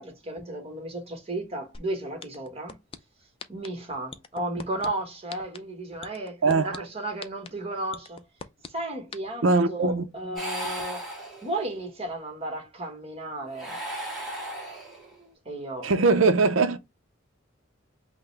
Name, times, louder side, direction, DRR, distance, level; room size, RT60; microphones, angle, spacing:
voice 1, 0.0-2.8 3.5-8.2 8.7-11.1 11.4-13.8 15.4-15.9, right 1 dB, 30° right, 1.3 m, -34 dB
sound 1, 1.7-1.8 2.2-3.0 3.4-3.7 4.1-4.9 5.3-5.6 6.0-6.8 7.2-7.5 7.9-8.7 9.1-9.2, left 5 dB, 30° left, 0.4 m, -39 dB
voice 2, 9.4-10.1 15.8-16.8, right 3 dB, 80° right, 0.6 m, -21 dB
sound 2, 10.4-11.8 13.4-15.3, right 1 dB, ahead, 2.6 m, -36 dB
5.7 x 2.2 x 3.2 m
head